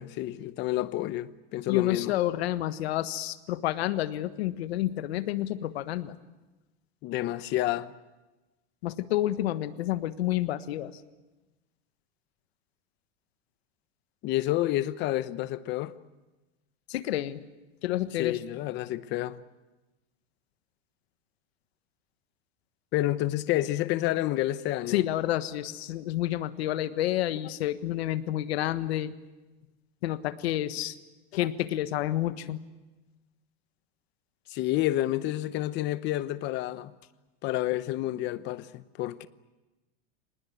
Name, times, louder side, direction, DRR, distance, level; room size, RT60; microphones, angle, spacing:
voice 1, 0.0-2.1 7.0-7.9 14.2-15.9 18.2-19.4 22.9-25.0 34.5-36.9 37.4-39.3, left 15 dB, 35° left, 0.9 m, -29 dB
voice 2, 1.7-6.1 8.8-10.9 16.9-17.4 17.8-18.4 24.9-29.1 30.0-31.0 31.3-32.6, left 14 dB, 90° left, 1.5 m, -29 dB
26.0 x 19.5 x 9.3 m
supercardioid pair, 160°, 31 cm